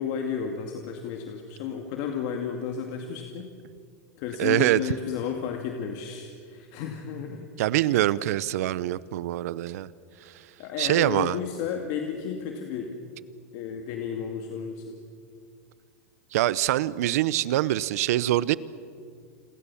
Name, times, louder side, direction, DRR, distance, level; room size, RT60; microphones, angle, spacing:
voice 1, 0.0-3.5 4.2-7.5 10.6-13.0 13.5-15.0, left 7 dB, 50° left, 2.2 m, -32 dB
voice 2, 4.4-4.8 7.6-9.9 10.8-11.4 16.3-18.5, right 14 dB, 75° right, 0.8 m, -24 dB
29.0 x 22.5 x 7.2 m
supercardioid pair, 150°, 8 cm